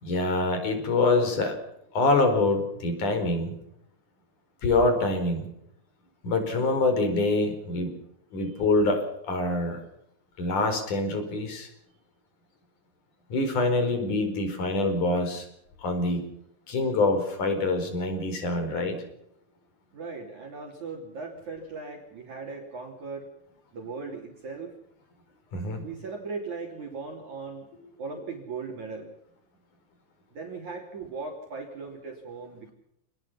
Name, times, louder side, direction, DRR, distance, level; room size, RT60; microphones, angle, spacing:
voice 1, 0.0-1.5 1.9-3.5 4.6-5.5 6.2-7.9 8.3-9.8 10.4-11.7 13.3-15.4 15.8-16.2 16.7-19.0 25.5-25.8, left 2 dB, 40° left, 7 dB, 6.0 m, -25 dB
voice 2, 19.9-23.3 23.7-24.7 25.8-27.7 28.0-29.1 30.3-32.7, right 4 dB, 40° right, 1 dB, 4.1 m, -38 dB
28.0 x 20.5 x 5.8 m, 0.76 s
omnidirectional pair, 5.4 m